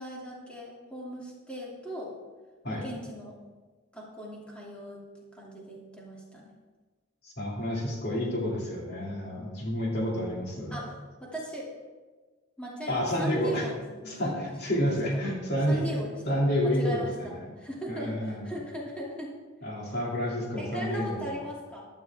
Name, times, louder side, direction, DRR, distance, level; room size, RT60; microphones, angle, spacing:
voice 1, 0.0-2.1 2.7-3.4 3.9-5.0 5.3-6.5 10.7-11.7 12.6-14.5 15.2-15.4 15.7-16.2 16.6-19.4 20.6-21.8, equal, 5° left, -5 dB, 2.7 m, -38 dB
voice 2, 7.2-10.9 12.9-13.7 14.0-15.8 16.2-17.6 17.9-18.5 19.6-21.4, equal, 50° left, -2 dB, 2.6 m, -29 dB
15.0 x 12.5 x 3.6 m, 1.3 s
head